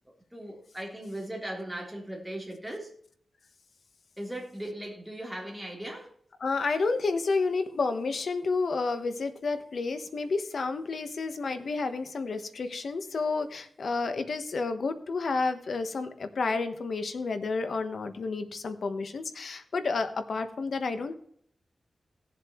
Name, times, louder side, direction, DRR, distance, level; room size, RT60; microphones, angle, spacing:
voice 1, 0.3-2.9 4.2-6.1, right 1 dB, 5° right, -1 dB, 3.6 m, -38 dB
voice 2, 6.4-21.1, left 4 dB, 75° left, 9 dB, 1.2 m, -30 dB
18.0 x 7.5 x 3.1 m, 0.64 s
wide cardioid pair, 85°, 0 cm